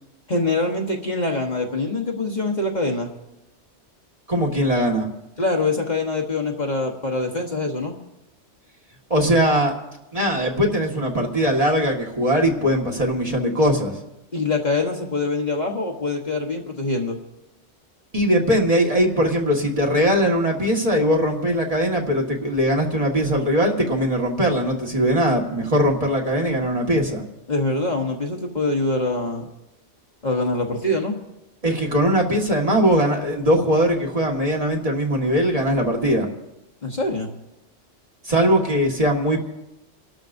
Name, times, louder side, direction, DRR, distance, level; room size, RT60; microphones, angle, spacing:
voice 1, 0.3-3.1 5.4-7.9 14.3-17.2 27.5-29.5 30.2-31.1 36.8-37.3, left 2 dB, 40° left, 1 dB, 1.3 m, -24 dB
voice 2, 4.3-5.1 9.1-9.7 10.1-14.0 18.1-27.2 31.6-36.3 38.2-39.4, equal, 30° right, -1 dB, 1.8 m, -20 dB
29.5 x 12.5 x 2.6 m, 0.92 s
omnidirectional pair, 1.2 m